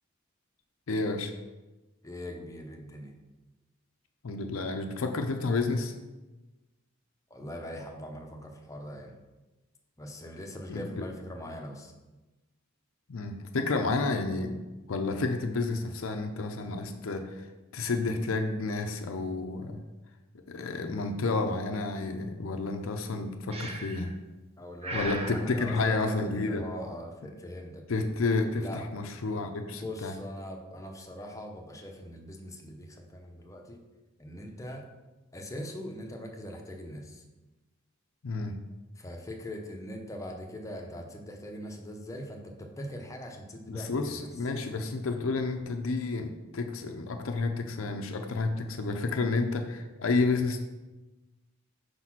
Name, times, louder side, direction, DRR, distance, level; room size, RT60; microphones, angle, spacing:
voice 1, 0.9-1.3 4.2-5.9 10.7-10.8 13.1-14.6 14.9-17.5 17.7-19.8 20.5-24.1 24.9-26.7 27.9-30.1 38.2-38.5 43.7-50.7, left 3 dB, 75° left, 4 dB, 0.5 m, -30 dB
voice 2, 2.0-3.2 7.3-9.2 10.0-11.9 24.6-28.0 28.6-28.8 29.7-33.9 34.2-34.8 35.3-37.2 39.0-44.3, equal, 15° left, 2 dB, 0.7 m, -41 dB
Breathing, 23.5-24.1 24.8-25.4, right 2 dB, 30° right, 0.7 m, -36 dB
5.1 x 4.1 x 5.9 m, 1.1 s
head